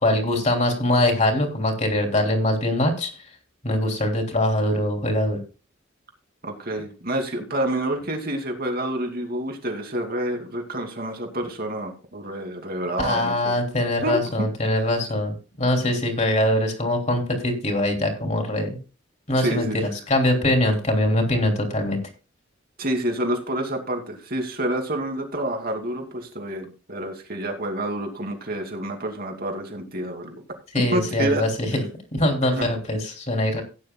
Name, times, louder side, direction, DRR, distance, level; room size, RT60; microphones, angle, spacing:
voice 1, 0.0-3.1 3.6-5.4 13.0-18.8 19.3-19.7 20.1-22.0 30.7-31.8 32.1-33.6, left 1 dB, 35° left, 3 dB, 3.2 m, -22 dB
voice 2, 6.4-13.6 14.0-14.2 19.4-20.0 22.8-30.3 30.7-31.4 32.5-32.7, right 1 dB, 50° right, 3 dB, 2.6 m, -28 dB
17.0 x 9.7 x 2.3 m, 0.33 s
head